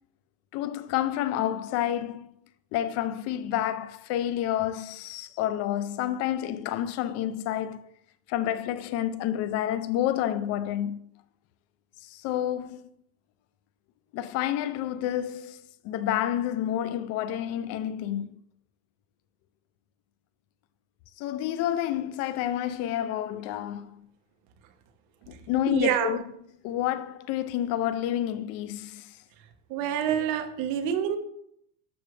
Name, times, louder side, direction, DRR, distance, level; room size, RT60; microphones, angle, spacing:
voice 1, 0.5-2.3 2.7-7.9 8.3-11.0 12.0-12.8 14.1-18.4 21.2-24.0 25.3-26.2 26.6-29.2, left 11 dB, 35° left, 0.5 m, -29 dB
voice 2, 25.7-26.1 29.7-31.2, right 9 dB, 55° right, 1.3 m, -27 dB
12.0 x 6.0 x 3.3 m
supercardioid pair, 160°, 44 cm